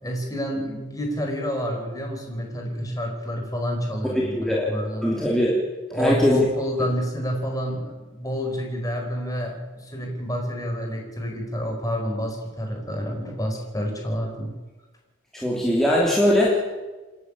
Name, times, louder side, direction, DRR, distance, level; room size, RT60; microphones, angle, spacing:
voice 1, 0.0-5.1 5.9-14.5, equal, 15° left, 1 dB, 4.4 m, -29 dB
voice 2, 4.1-4.7 5.0-5.6 5.9-6.5 15.3-16.6, left 1 dB, ahead, -5 dB, 3.2 m, -21 dB
27.5 x 11.0 x 8.8 m, 1.2 s
head